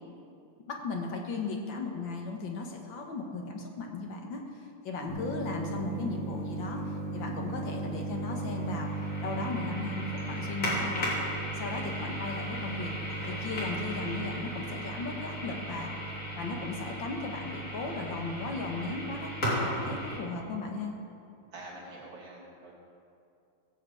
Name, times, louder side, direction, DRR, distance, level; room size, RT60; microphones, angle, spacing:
voice 1, 0.7-4.4 4.8-8.9 9.2-11.2 11.5-12.9 13.3-15.9 16.4-19.3 19.6-20.9, left 3 dB, 75° left, 2 dB, 2.2 m, -36 dB
sound 1, 5.1-20.2, right 1 dB, 45° left, 4.0 m, -35 dB
voice 2, 19.7-20.1 21.5-22.7, right 2 dB, 85° right, -4 dB, 3.8 m, -46 dB
16.5 x 6.8 x 8.0 m, 2.6 s
omnidirectional pair, 2.1 m